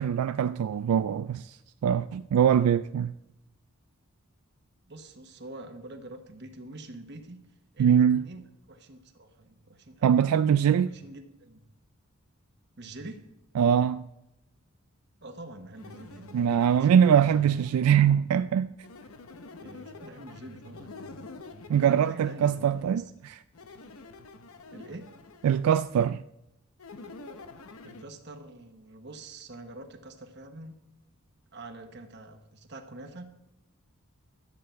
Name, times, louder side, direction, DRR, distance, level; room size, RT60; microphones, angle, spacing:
voice 1, 0.0-1.6 1.8-3.1 7.8-8.2 10.0-10.9 13.6-14.1 16.3-18.7 21.7-23.4 25.4-26.2, right 8 dB, 80° right, 0.3 m, -23 dB
voice 2, 4.8-7.4 7.7-10.2 10.8-11.6 12.8-13.2 15.2-17.5 19.6-21.2 21.8-23.2 24.7-25.1 27.8-30.8 31.5-33.3, right 2 dB, 50° right, 1.1 m, -45 dB
sound 1, 15.7-18.0 18.8-23.0 23.5-25.7 26.8-28.0, left 3 dB, 75° left, 0.8 m, -47 dB
12.5 x 8.5 x 4.5 m
head